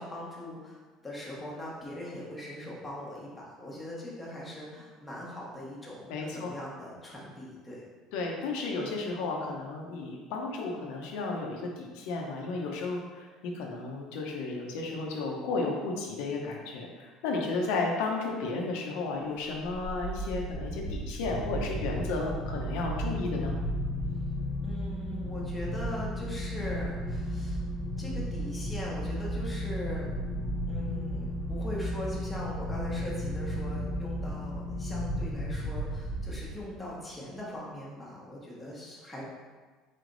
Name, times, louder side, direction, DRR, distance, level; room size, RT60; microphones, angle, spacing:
voice 1, 0.0-3.3 3.6-7.8 24.6-27.6 28.0-30.1 30.7-39.2, left 1 dB, 5° left, -6 dB, 1.0 m, -41 dB
voice 2, 6.1-6.5 8.1-23.6, left 3 dB, 75° left, 0 dB, 0.7 m, -33 dB
sound 1, 19.5-36.9, equal, 55° left, 1.0 m, -34 dB
4.2 x 3.2 x 3.9 m, 1.4 s
cardioid pair, 160°, 0 cm